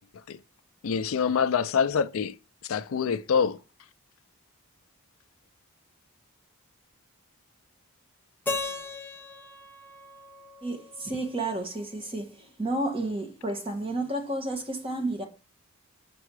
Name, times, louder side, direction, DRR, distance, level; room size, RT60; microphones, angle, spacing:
voice 1, 0.8-2.3 2.6-3.6, left 6 dB, 65° left, 0.4 m, -25 dB
Keyboard (musical), 8.5-11.4, left 3 dB, 10° left, 0.6 m, -37 dB
voice 2, 10.6-15.2, right 2 dB, 25° right, 1.4 m, -31 dB
6.8 x 4.6 x 4.8 m
head